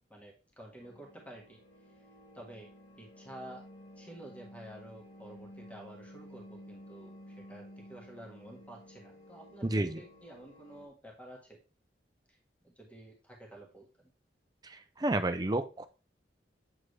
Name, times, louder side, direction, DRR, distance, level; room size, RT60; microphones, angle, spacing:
voice 1, 0.1-1.6 2.3-2.7 3.0-3.6 4.0-11.6 12.6-14.1, right 1 dB, 10° left, -1 dB, 1.7 m, -50 dB
sound 1, 0.8-10.9, equal, 50° left, 2.0 m, -53 dB
voice 2, 9.6-10.0 14.6-15.9, right 2 dB, 25° right, 8 dB, 0.6 m, -31 dB
8.2 x 3.8 x 3.2 m, 0.32 s
head